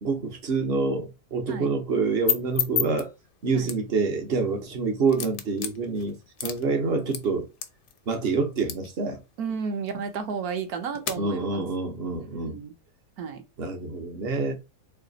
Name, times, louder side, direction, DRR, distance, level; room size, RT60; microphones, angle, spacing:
voice 1, 0.0-3.1 3.4-6.2 6.4-7.5 8.1-9.2 11.2-12.6 13.6-14.6, right 4 dB, 50° right, 0.8 m, -27 dB
sound 1, 1.9-11.2, left 10 dB, 85° left, 1.3 m, -35 dB
voice 2, 9.4-11.7 12.3-12.7 13.2-13.4, right 6 dB, 70° right, 1.1 m, -32 dB
3.3 x 2.8 x 3.9 m
omnidirectional pair, 1.8 m